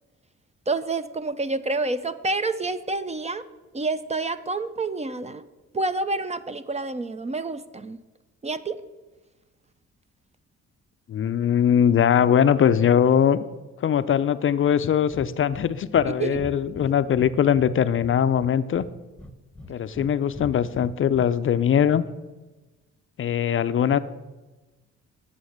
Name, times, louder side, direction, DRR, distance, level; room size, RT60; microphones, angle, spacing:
voice 1, 0.7-3.4 3.7-5.4 5.7-8.0 8.4-8.8 16.2-16.4, right 3 dB, 20° right, 13 dB, 0.5 m, -28 dB
voice 2, 11.1-13.4 13.8-18.9 19.7-22.0 23.2-24.0, left 8 dB, 45° left, 13 dB, 0.5 m, -21 dB
Breathing, 15.1-15.3 15.5-15.7 15.9-16.1 16.3-17.7 18.0-18.9 19.2-20.1 20.3-21.3, left 2 dB, 5° left, 1.0 m, -40 dB
9.2 x 6.9 x 6.5 m, 1.2 s
cardioid pair, 90°, 30 cm